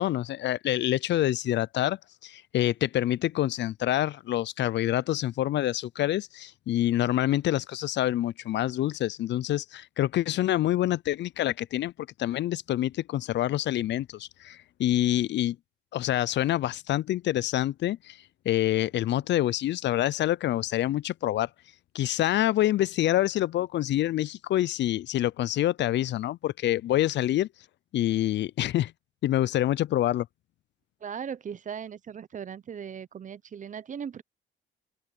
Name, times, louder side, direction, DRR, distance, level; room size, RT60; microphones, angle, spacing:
voice 1, 0.0-11.9 12.2-15.6 15.9-18.2 18.5-21.5 21.9-27.5 27.9-28.9 29.2-30.3, left 13 dB, 65° left, 0.4 m, -26 dB
voice 2, 31.0-34.2, right 7 dB, 40° right, 0.6 m, -38 dB
cardioid pair, 90°, 20 cm